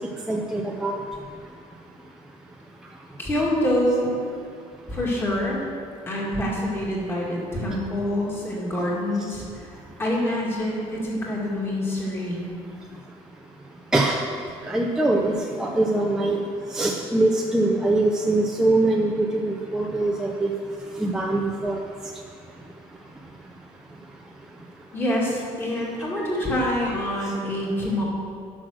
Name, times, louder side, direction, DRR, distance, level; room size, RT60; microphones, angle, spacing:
voice 1, 0.3-1.0 13.9-14.2 14.7-16.4 16.7-20.5 21.0-21.8, right 2 dB, 5° right, -1 dB, 0.5 m, -23 dB
voice 2, 3.2-4.1 4.9-5.6 6.1-12.6 24.9-28.0, left 1 dB, 20° left, -4 dB, 2.2 m, -26 dB
10.0 x 6.2 x 6.4 m, 2.5 s
cardioid pair, 165°, 12 cm